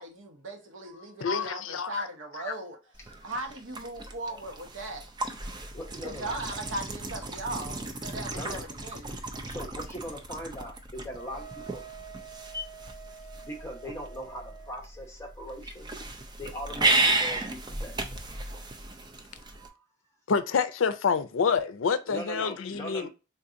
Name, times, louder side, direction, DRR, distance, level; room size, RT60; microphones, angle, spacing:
voice 1, 0.0-2.8 3.2-5.0 6.0-9.1, right 1 dB, 80° right, 0.9 m, -38 dB
voice 2, 1.2-2.1 20.3-23.1, left 6 dB, 85° left, 0.5 m, -27 dB
sound 1, 2.9-19.7, right 2 dB, 20° right, 0.5 m, -34 dB
voice 3, 5.7-6.3 8.3-8.6 9.4-11.8 12.5-12.6 13.4-15.9 16.4-17.4 17.8-18.1 19.6-19.7 22.1-23.1, equal, 15° left, 1.0 m, -40 dB
Wind instrument woodwind instrument, 11.1-14.8, right 7 dB, 40° left, 1.1 m, -47 dB
3.8 x 2.8 x 2.4 m
head